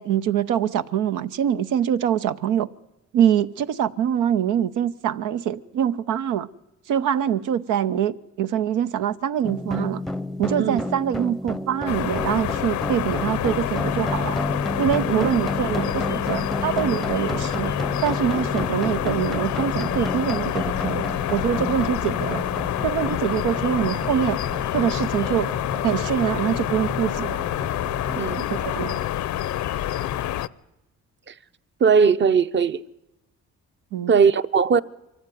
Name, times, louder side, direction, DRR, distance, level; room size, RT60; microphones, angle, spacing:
voice 1, 0.0-2.7 3.1-6.5 6.9-10.0 10.4-14.4 14.8-17.7 18.0-22.4 22.8-24.4 24.7-25.5 25.8-27.4 28.5-29.0 33.9-34.1, right 9 dB, 90° right, 0.8 m, -24 dB
sound 1, 9.4-28.7, left 1 dB, ahead, 0.7 m, -31 dB
sound 2, 11.9-30.5, left 12 dB, 70° left, 0.7 m, -27 dB
voice 2, 28.2-28.5 31.3-31.4 31.8-32.8 34.1-34.8, right 6 dB, 40° right, 0.8 m, -19 dB
23.0 x 14.5 x 9.3 m
cardioid pair, 90°, 30 cm